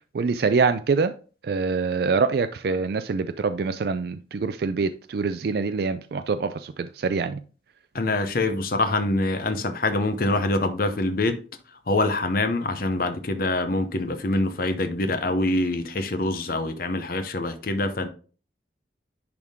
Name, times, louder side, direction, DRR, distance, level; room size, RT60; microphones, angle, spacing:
voice 1, 0.1-1.1 1.4-7.4, right 4 dB, 55° right, 0.4 m, -25 dB
voice 2, 7.9-11.4 11.9-18.1, left 2 dB, 55° left, 0.7 m, -25 dB
10.5 x 3.6 x 3.5 m
head